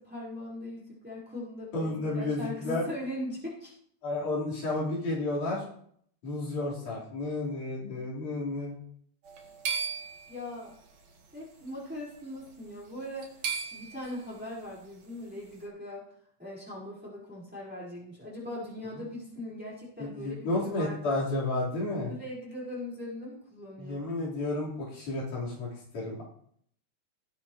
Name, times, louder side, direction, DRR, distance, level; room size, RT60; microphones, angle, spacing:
voice 1, 0.0-3.7 10.3-10.7 11.3-16.0 16.4-21.3 22.0-24.1, left 1 dB, 5° right, -6 dB, 4.6 m, -40 dB
voice 2, 1.7-2.8 4.0-5.6 6.2-8.7 20.0-22.1 23.8-26.2, left 2 dB, 75° left, -4 dB, 5.8 m, -32 dB
sound 1, 9.2-11.0 11.9-12.2 12.5-12.6 13.0-14.3, right 6 dB, 60° right, 3.0 m, -35 dB
19.0 x 8.7 x 3.2 m, 0.65 s
omnidirectional pair, 3.6 m